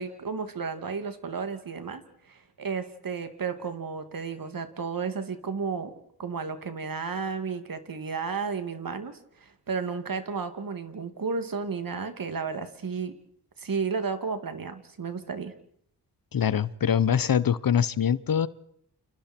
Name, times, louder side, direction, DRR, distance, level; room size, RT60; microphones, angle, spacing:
voice 1, 0.0-5.9 6.2-13.1 13.6-15.5, right 5 dB, 55° right, 9 dB, 2.6 m, -33 dB
voice 2, 16.3-18.5, left 8 dB, 60° left, 18 dB, 1.0 m, -24 dB
29.0 x 26.5 x 4.5 m, 0.68 s
cardioid pair, 65°, 39 cm